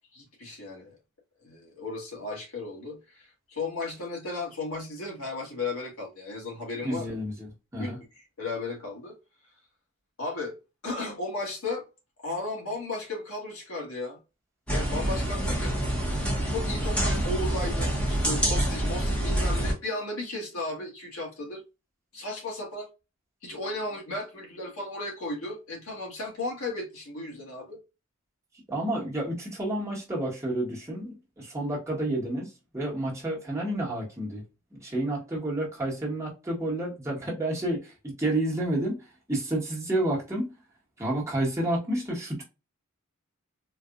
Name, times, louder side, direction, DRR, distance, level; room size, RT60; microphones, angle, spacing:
voice 1, 0.1-0.9 1.4-7.2 7.8-7.9 8.4-9.2 10.2-10.6 10.8-11.9 12.2-14.2 14.7-15.8 16.4-21.6 22.1-22.9 23.4-27.8, left 2 dB, 85° left, 1.7 m, -35 dB
voice 2, 6.8-8.0 28.7-34.4 34.7-40.5 41.0-42.4, right 1 dB, 15° right, 1.3 m, -30 dB
sound 1, 14.7-19.7, right 1 dB, 5° left, 1.1 m, -27 dB
4.0 x 2.5 x 2.4 m
head